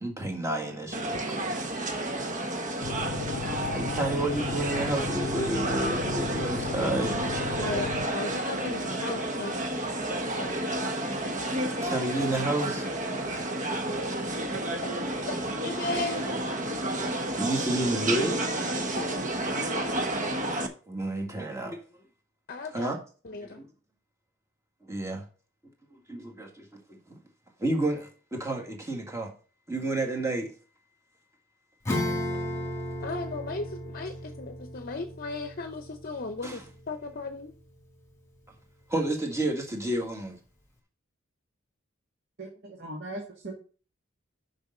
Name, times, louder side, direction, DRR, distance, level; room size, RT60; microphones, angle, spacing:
voice 1, 0.0-1.4 3.7-7.2 11.8-12.9 17.4-18.7 20.9-21.8 22.7-23.0 23.5-23.7 24.9-25.2 25.9-27.2 27.6-29.3 29.7-30.5 36.4-36.6 38.9-40.4, right 1 dB, 15° right, 1.9 m, -30 dB
sound 1, 0.9-20.7, right 1 dB, 40° right, 1.0 m, -31 dB
sound 2, 2.8-8.1, left 6 dB, 90° left, 0.5 m, -36 dB
voice 2, 7.6-9.9 10.4-11.0 15.3-15.4 15.6-16.3 19.0-19.2 22.5-22.9 23.2-23.6 33.0-37.5, left 3 dB, 50° left, 0.7 m, -36 dB
Acoustic guitar / Strum, 31.8-37.9, left 1 dB, 15° left, 2.0 m, -35 dB
voice 3, 42.4-43.5, right 1 dB, 55° right, 1.8 m, -39 dB
6.8 x 5.5 x 6.6 m
head